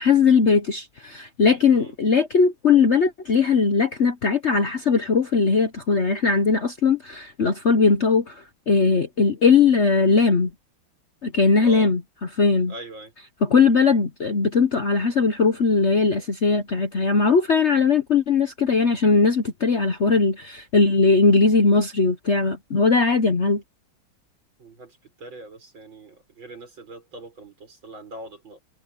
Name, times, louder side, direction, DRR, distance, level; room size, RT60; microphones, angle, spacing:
voice 1, 0.0-10.5 11.2-12.0 12.4-12.7 13.4-23.6, left 4 dB, 45° left, 1.0 m, -19 dB
voice 2, 11.6-11.9 12.7-13.1 24.6-28.6, right 1 dB, 70° right, 7.1 m, -41 dB
omnidirectional pair, 2.2 m